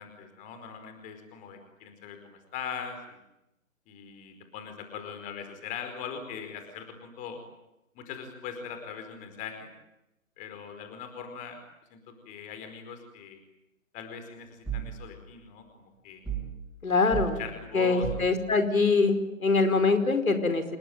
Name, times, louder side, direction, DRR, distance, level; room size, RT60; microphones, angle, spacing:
voice 1, 0.0-3.2 3.9-7.4 7.9-9.7 10.4-11.6 11.9-13.4 13.9-16.2 17.4-18.3, left 6 dB, 20° left, 7 dB, 4.8 m, -41 dB
sound 1, 14.7-15.0 16.2-16.6 17.1-17.4 18.0-18.4, right 9 dB, ahead, 6.4 m, -33 dB
voice 2, 16.8-17.4 17.7-20.6, left 3 dB, 85° left, 8 dB, 5.1 m, -24 dB
27.5 x 22.0 x 9.5 m, 0.89 s
hypercardioid pair, 150°, 40 cm